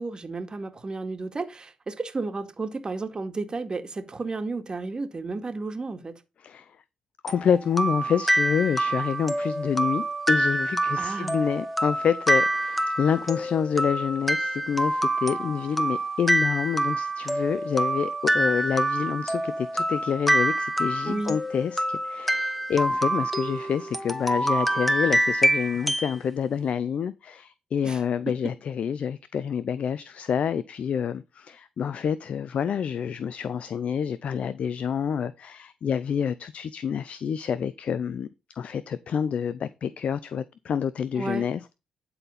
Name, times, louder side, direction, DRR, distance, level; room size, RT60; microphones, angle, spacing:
voice 1, 0.0-6.1 11.0-11.3 21.1-21.4 27.8-28.0 41.2-41.4, right 3 dB, 35° right, 2.1 m, -32 dB
voice 2, 7.2-38.3 38.6-41.8, left 7 dB, 65° left, 0.5 m, -28 dB
sound 1, 7.3-26.2, right 1 dB, 5° left, 1.2 m, -26 dB
12.0 x 4.3 x 5.7 m
supercardioid pair, 55°, 2 cm